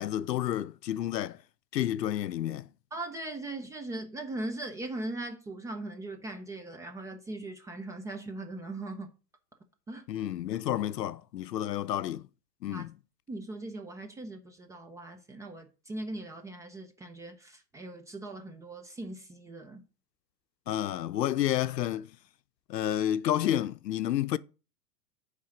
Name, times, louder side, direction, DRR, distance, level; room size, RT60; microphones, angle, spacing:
voice 1, 0.0-1.4 1.7-2.7 10.1-12.2 12.6-12.9 20.7-22.1 22.7-24.4, left 12 dB, 85° left, 0.6 m, -30 dB
voice 2, 2.9-9.1 9.9-10.0 12.7-12.8 13.3-19.8, right 2 dB, 5° right, 0.3 m, -39 dB
9.1 x 3.7 x 6.4 m
hypercardioid pair, 105°, 48 cm